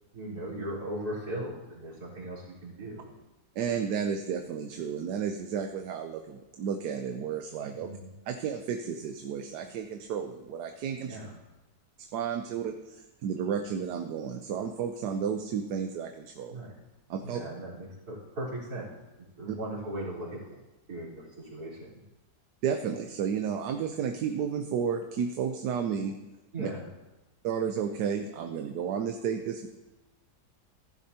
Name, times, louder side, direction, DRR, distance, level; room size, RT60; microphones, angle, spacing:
voice 1, 0.1-3.1 7.7-8.1 11.0-11.3 16.5-16.8 17.2-18.9 19.4-20.4 20.9-22.0 26.5-26.8, right 1 dB, 60° right, -8 dB, 4.5 m, -38 dB
voice 2, 3.6-7.9 8.3-11.2 12.0-16.6 17.1-17.4 19.5-19.6 22.6-26.2 26.6-26.7 27.4-29.7, right 7 dB, 75° right, 6 dB, 1.2 m, -32 dB
15.0 x 11.0 x 2.9 m, 1.1 s
omnidirectional pair, 1.8 m